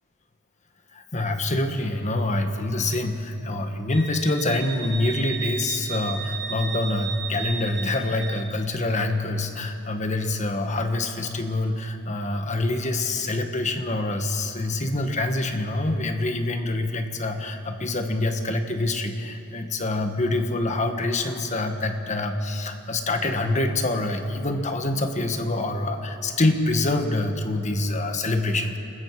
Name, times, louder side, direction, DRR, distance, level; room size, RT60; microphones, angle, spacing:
voice 1, 0.9-28.8, left 2 dB, 35° left, 6 dB, 1.4 m, -26 dB
Wind instrument woodwind instrument, 3.9-8.5, right 6 dB, 5° left, 2.9 m, -34 dB
28.0 x 21.0 x 4.8 m, 2.8 s
head